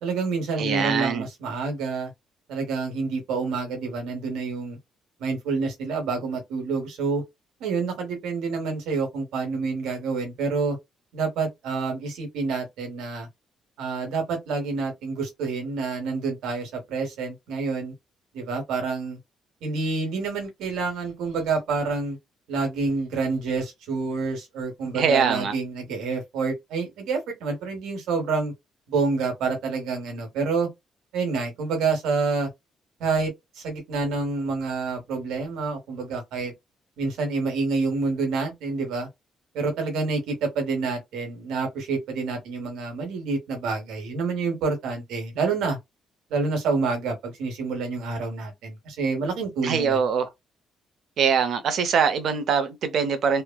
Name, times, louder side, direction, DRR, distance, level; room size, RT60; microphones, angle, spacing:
voice 1, 0.0-2.1 2.5-4.8 5.2-7.2 7.6-10.8 11.1-13.3 13.8-17.9 18.3-19.2 19.6-22.2 22.5-28.5 28.9-30.7 31.1-32.5 33.0-36.5 37.0-39.1 39.5-45.8 46.3-50.0, right 4 dB, 90° right, 1.3 m, -28 dB
voice 2, 0.6-1.2 24.9-25.5 49.6-50.3 51.2-53.4, right 6 dB, 70° right, 0.8 m, -23 dB
3.1 x 2.2 x 2.3 m
cardioid pair, 90°, 0 cm